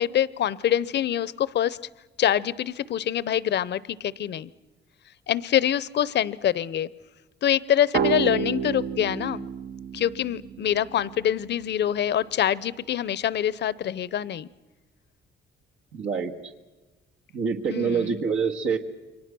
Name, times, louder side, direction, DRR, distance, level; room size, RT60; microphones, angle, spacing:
voice 1, 0.0-1.8 2.2-4.5 5.3-6.9 7.4-9.5 9.9-14.5 17.7-18.2, left 10 dB, 60° left, 19 dB, 0.7 m, -25 dB
sound 1, 7.9-11.4, right 7 dB, 55° right, 0.7 m, -30 dB
voice 2, 15.9-16.3 17.3-18.8, right 6 dB, 85° right, 1 dB, 2.0 m, -26 dB
29.0 x 23.5 x 6.2 m, 1.2 s
cardioid pair, 90°, 20 cm